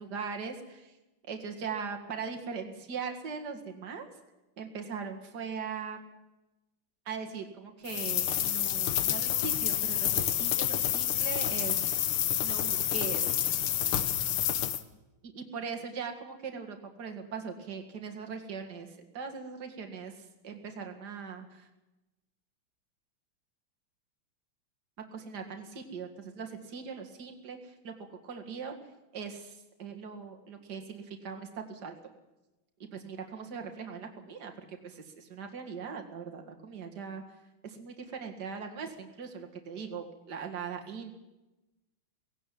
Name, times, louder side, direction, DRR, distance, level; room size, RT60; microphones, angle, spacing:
voice 1, 0.0-0.9 1.3-4.1 4.6-6.2 7.1-11.9 12.4-14.0 15.2-21.7 25.1-28.7 29.1-31.9 32.8-34.5 34.8-37.2 37.6-41.1, right 6 dB, 50° right, 4 dB, 2.5 m, -40 dB
sound 1, 7.9-14.8, left 11 dB, 85° left, 1.9 m, -29 dB
17.5 x 17.0 x 9.3 m, 1.0 s
omnidirectional pair, 2.3 m